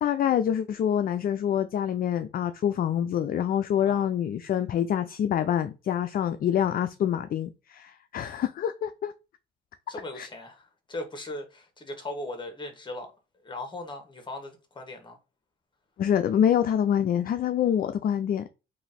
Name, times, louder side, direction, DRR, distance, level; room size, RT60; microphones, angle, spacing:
voice 1, 0.0-9.1 10.2-10.3 16.0-18.5, left 9 dB, 45° left, 0.4 m, -26 dB
voice 2, 9.9-13.1 13.4-15.2, left 2 dB, 25° left, 1.3 m, -38 dB
3.0 x 2.6 x 4.1 m
cardioid pair, 90°, 20 cm